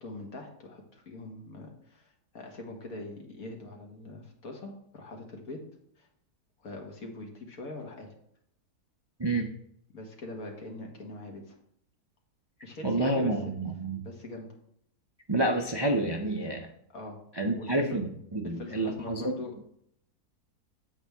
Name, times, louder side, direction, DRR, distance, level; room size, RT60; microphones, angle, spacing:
voice 1, 0.0-5.7 6.0-6.1 6.6-8.1 9.9-11.6 12.6-13.5 14.0-14.6 16.9-17.2 17.5-18.0 18.4-19.7, left 2 dB, 65° left, 1 dB, 2.0 m, -42 dB
voice 2, 9.2-9.5 12.8-14.0 15.3-16.7 17.4-19.4, right 1 dB, 35° right, 2 dB, 0.4 m, -29 dB
8.7 x 7.8 x 3.5 m, 0.71 s
omnidirectional pair, 1.7 m